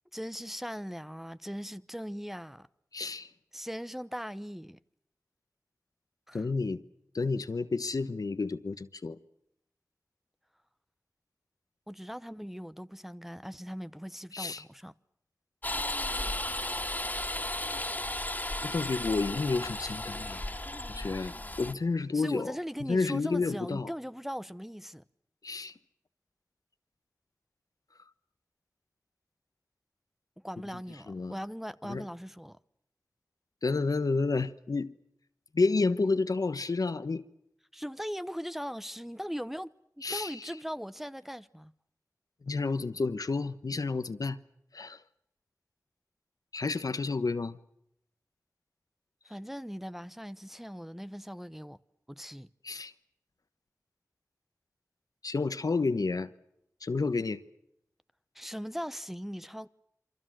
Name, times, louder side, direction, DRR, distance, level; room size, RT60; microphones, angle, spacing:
voice 1, 0.1-2.7 3.5-4.8 6.3-6.5 11.9-14.9 22.1-25.0 30.4-32.6 37.7-39.7 40.0-41.7 49.3-51.8 52.1-52.5 58.3-59.7, equal, 5° right, 0.9 m, -39 dB
voice 2, 2.9-3.3 6.3-6.8 7.1-9.2 14.3-14.6 18.6-20.4 20.9-23.9 25.4-25.7 31.1-31.4 31.8-32.1 33.6-34.9 35.5-37.2 40.0-40.5 42.4-44.4 44.7-45.0 46.5-47.6 52.6-52.9 55.2-56.3 56.8-57.4, left 3 dB, 75° left, 1.2 m, -30 dB
sound 1, 15.6-21.7, left 1 dB, 25° left, 2.3 m, -35 dB
28.0 x 24.5 x 6.2 m
wide cardioid pair, 50°, 6 cm